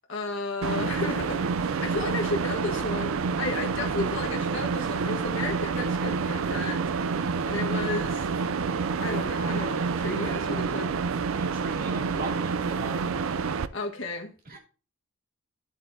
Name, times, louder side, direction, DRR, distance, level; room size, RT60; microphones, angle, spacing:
voice 1, 0.1-6.8 7.4-8.3 9.0-10.9 13.7-14.6, left 2 dB, 60° left, 1.5 m, -33 dB
sound 1, 0.6-13.7, right 5 dB, 65° right, 0.4 m, -28 dB
voice 2, 11.1-13.3 14.4-14.6, right 2 dB, 40° right, 2.6 m, -40 dB
9.9 x 8.0 x 2.7 m
head